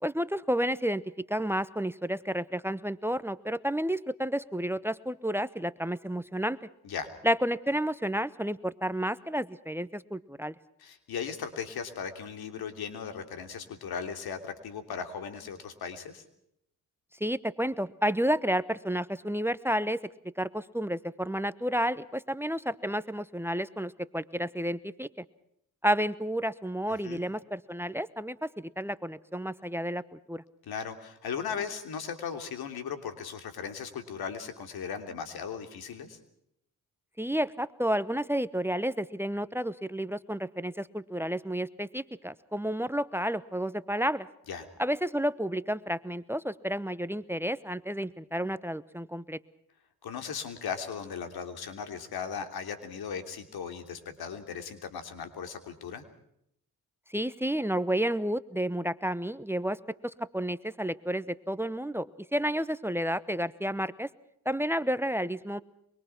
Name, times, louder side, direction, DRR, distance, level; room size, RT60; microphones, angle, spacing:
voice 1, 0.0-6.6 7.2-10.5 17.2-20.0 20.4-25.2 25.8-30.4 37.2-44.3 44.8-49.4 57.1-59.8 60.0-64.1 64.4-65.6, equal, 5° right, 17 dB, 1.0 m, -31 dB
voice 2, 10.8-16.2 27.0-27.2 30.7-36.2 44.5-44.7 50.0-56.0, left 6 dB, 85° left, 8 dB, 3.3 m, -37 dB
24.5 x 23.0 x 6.0 m, 0.75 s
cardioid pair, 75°, 36 cm